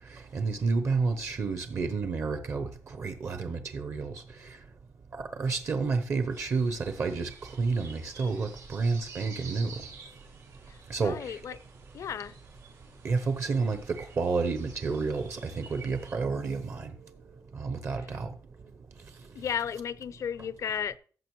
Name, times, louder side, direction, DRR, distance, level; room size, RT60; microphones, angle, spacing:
voice 1, 0.1-4.6 5.1-9.7 10.9-11.4 13.0-16.9 17.5-18.3, right 4 dB, 50° right, 0.7 m, -30 dB
sound 1, 6.3-16.1, right 4 dB, 85° right, 5.1 m, -50 dB
voice 2, 10.7-11.6 11.9-12.4 19.3-21.0, left 8 dB, 60° left, 0.4 m, -34 dB
14.0 x 6.4 x 3.1 m
wide cardioid pair, 135°, 6 cm